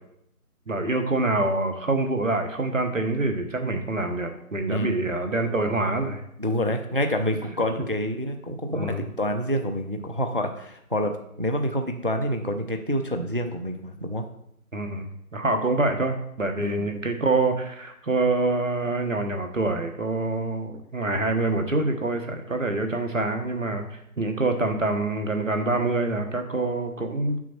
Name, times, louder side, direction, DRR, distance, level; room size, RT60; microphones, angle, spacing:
voice 1, 0.7-6.2 8.7-9.0 14.7-15.1 15.3-23.9 24.2-27.4, right 2 dB, 60° right, 5 dB, 1.2 m, -26 dB
voice 2, 4.6-5.1 6.4-14.2 16.6-16.9, equal, 40° right, 6 dB, 0.5 m, -27 dB
7.2 x 6.2 x 4.4 m, 0.75 s
figure-of-eight pair, 160°, 44 cm